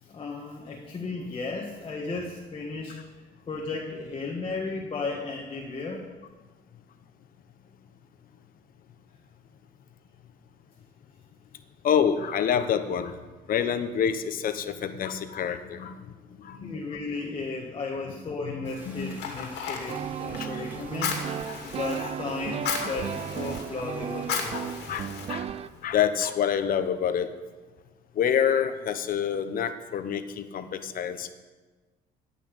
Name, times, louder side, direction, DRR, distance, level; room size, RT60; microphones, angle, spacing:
voice 1, 0.0-6.1 16.6-21.3 21.6-25.0, left 3 dB, 30° left, 0 dB, 1.7 m, -35 dB
voice 2, 11.8-13.2 13.5-15.9 16.4-16.7 18.4-18.6 18.8-19.2 20.4-20.6 22.0-22.1 22.8-22.9 24.5-25.5 25.8-27.3 28.2-31.3, left 8 dB, 55° left, 9 dB, 1.1 m, -27 dB
Fire, 18.6-25.8, left 6 dB, 85° left, 2.5 m, -36 dB
sound 1, 18.8-25.0, equal, 10° right, 3.7 m, -50 dB
sound 2, 19.9-25.7, right 9 dB, 35° right, 0.4 m, -35 dB
16.0 x 6.0 x 9.0 m, 1.3 s
cardioid pair, 110°, 17 cm